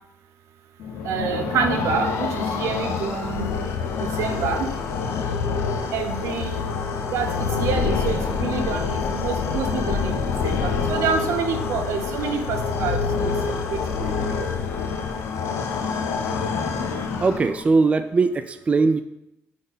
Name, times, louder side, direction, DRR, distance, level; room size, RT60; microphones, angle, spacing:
sound 1, 0.8-17.8, left 5 dB, 80° left, 0.8 m, -26 dB
voice 1, 1.0-3.5 4.0-4.7 5.9-6.6 7.1-14.5, right 6 dB, 80° right, 7 dB, 0.8 m, -28 dB
voice 2, 17.2-19.0, right 4 dB, 25° right, 10 dB, 0.4 m, -20 dB
9.2 x 3.7 x 4.1 m, 0.84 s
cardioid pair, 90°, 5 cm